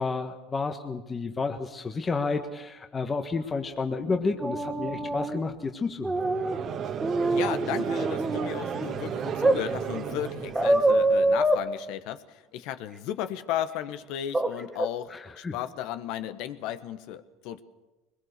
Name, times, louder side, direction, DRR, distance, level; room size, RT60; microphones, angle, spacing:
voice 1, 0.0-6.2 15.1-15.5, left 4 dB, 25° left, 5 dB, 1.4 m, -31 dB
sound 1, 3.0-6.2 6.5-6.9, left 7 dB, 85° left, 2.5 m, -48 dB
sound 2, 4.4-5.4 6.0-6.6 7.0-8.9 9.4-9.6 10.5-11.6 14.3-14.5 14.8-14.9, right 1 dB, 10° right, 1.9 m, -25 dB
Conversation / Crowd, 6.1-11.4, right 7 dB, 45° right, 1.5 m, -34 dB
voice 2, 7.3-17.6, left 11 dB, 70° left, 12 dB, 1.3 m, -35 dB
22.0 x 21.0 x 6.8 m, 1.1 s
supercardioid pair, 100°, 0 cm